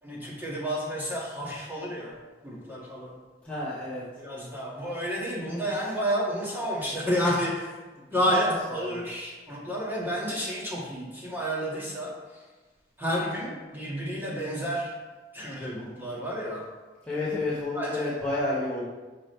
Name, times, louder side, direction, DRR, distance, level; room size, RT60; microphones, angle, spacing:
voice 1, 0.0-2.1 2.4-3.1 4.2-7.8 8.1-12.4 13.0-14.9 15.3-16.7 17.7-18.1, equal, 10° right, -7 dB, 1.7 m, -30 dB
voice 2, 3.4-4.0 8.0-8.5 8.8-9.0 17.0-18.8, left 2 dB, 5° left, -10 dB, 1.1 m, -30 dB
6.2 x 6.1 x 3.3 m, 1.3 s
head